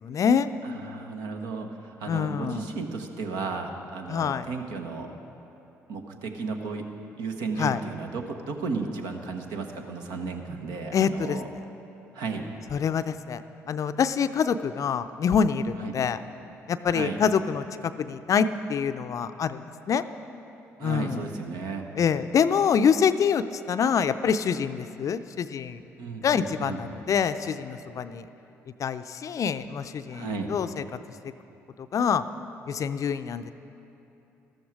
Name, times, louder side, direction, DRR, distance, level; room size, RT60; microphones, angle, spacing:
voice 1, 0.0-0.5 2.1-2.7 4.1-4.5 7.6-7.8 10.9-11.6 12.7-13.4 13.7-16.2 16.7-20.0 20.8-21.2 22.0-25.8 26.2-28.3 28.8-30.8 31.2-31.3 31.9-32.2 32.7-33.5, left 7 dB, 45° left, 11 dB, 0.5 m, -26 dB
voice 2, 0.6-5.1 5.9-6.9 7.2-11.5 12.1-12.4 15.8-15.9 16.9-17.2 20.8-21.8 26.0-26.8 30.1-30.5, right 4 dB, 70° right, 4 dB, 1.1 m, -34 dB
13.5 x 13.0 x 4.8 m, 2.9 s
hypercardioid pair, 50°, 7 cm